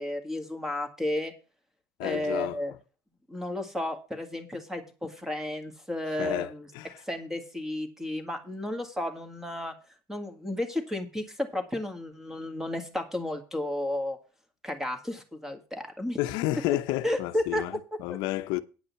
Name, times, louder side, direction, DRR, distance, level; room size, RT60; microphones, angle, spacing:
voice 1, 0.0-1.3 2.0-2.7 3.3-6.7 7.1-9.7 10.1-14.2 14.6-16.2 17.0-17.6, left 1 dB, 5° right, 2.0 m, -32 dB
voice 2, 2.0-2.6 6.2-6.9 16.2-17.7 18.0-18.6, left 16 dB, 75° left, 0.7 m, -31 dB
9.5 x 5.5 x 7.0 m
cardioid pair, 135°, 7 cm